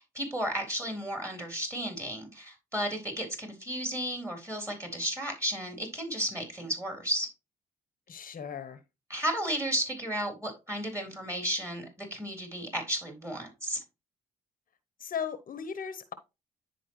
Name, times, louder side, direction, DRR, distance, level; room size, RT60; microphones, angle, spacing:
voice 1, 0.1-7.3 9.1-13.8, equal, 15° right, 3.7 m, -33 dB
voice 2, 8.1-8.8 15.0-16.1, left 7 dB, 55° left, 0.9 m, -37 dB
9.9 x 4.4 x 3.1 m
hypercardioid pair, 50°, 17 cm